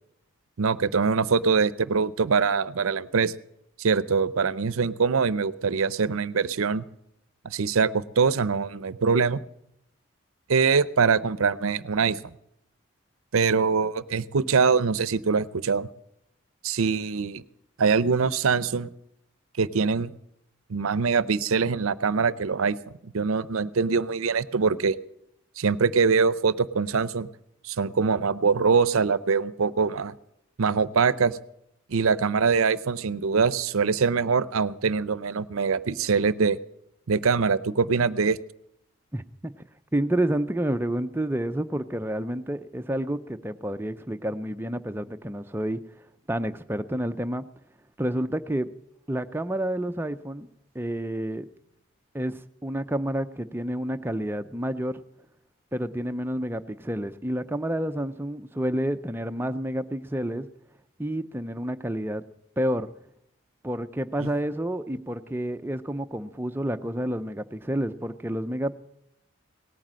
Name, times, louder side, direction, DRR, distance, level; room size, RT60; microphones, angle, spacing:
voice 1, 0.6-3.3 3.8-6.8 7.4-9.4 10.5-12.2 13.3-15.9 16.6-17.4 17.8-18.9 19.6-20.1 20.7-22.8 23.0-25.0 25.6-27.3 27.6-30.1 30.6-31.4 31.9-36.6 37.1-38.4 64.2-64.3, right 5 dB, 75° right, 18 dB, 0.6 m, -23 dB
voice 2, 39.1-39.5 39.9-45.8 46.3-47.4 48.0-48.7 49.1-50.5 50.7-51.5 52.1-55.0 55.7-60.5 61.0-62.2 62.6-62.9 63.6-68.7, right 1 dB, 10° right, 8 dB, 0.5 m, -29 dB
18.0 x 9.3 x 7.4 m, 0.78 s
head